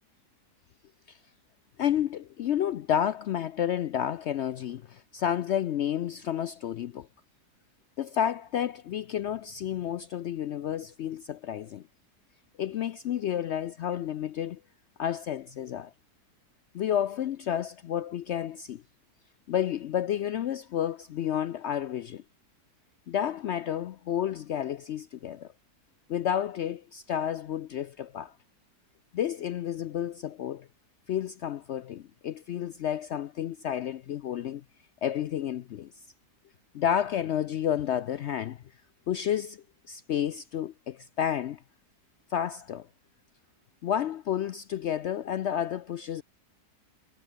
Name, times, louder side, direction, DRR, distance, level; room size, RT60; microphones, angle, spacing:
voice 1, 1.8-7.1 8.0-11.8 12.6-14.6 15.0-15.9 16.7-18.8 19.5-22.2 23.1-25.5 26.1-28.3 29.1-30.7 31.1-34.6 35.0-35.9 36.7-38.6 39.1-41.6 42.3-42.9 43.8-46.2, left 10 dB, 75° left, 0.6 m, -31 dB
omnidirectional pair, 1.7 m